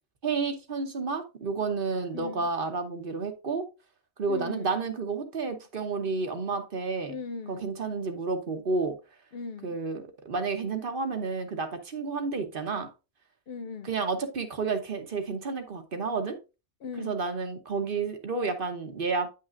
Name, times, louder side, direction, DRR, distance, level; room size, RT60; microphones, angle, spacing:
voice 1, 0.2-3.6 4.2-7.1 7.5-9.0 9.6-12.9 13.8-16.4 17.0-19.3, right 4 dB, 55° right, 1.2 m, -31 dB
voice 2, 2.1-2.5 4.3-4.7 7.1-7.6 9.3-9.8 13.5-13.9 16.8-17.2, left 4 dB, 65° left, 0.8 m, -38 dB
9.3 x 5.7 x 2.5 m
omnidirectional pair, 1.1 m